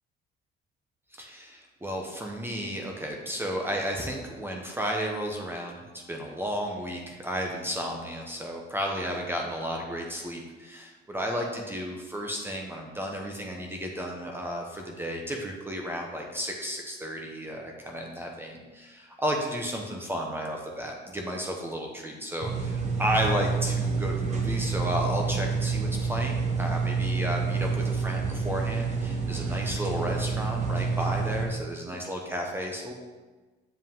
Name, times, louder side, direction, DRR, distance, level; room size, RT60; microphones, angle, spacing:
voice 1, 1.1-5.8 6.1-32.9, equal, 10° right, 0 dB, 0.8 m, -33 dB
sound 1, 22.4-31.5, right 5 dB, 35° right, 1.1 m, -28 dB
7.3 x 5.2 x 3.7 m, 1.3 s
cardioid pair, 125°, 19 cm